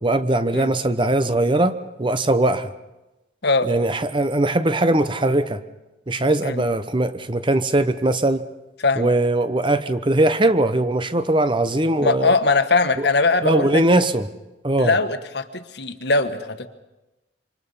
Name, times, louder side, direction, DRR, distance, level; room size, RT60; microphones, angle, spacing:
voice 1, 0.0-2.7 3.6-5.6 6.1-8.5 9.0-12.3 13.0-13.1 13.4-14.3 14.6-14.9, right 1 dB, 25° right, 12 dB, 0.9 m, -20 dB
voice 2, 8.8-9.1 12.0-13.8 14.8-16.7, left 3 dB, 60° left, 9 dB, 1.4 m, -21 dB
27.0 x 25.5 x 5.6 m, 1.0 s
head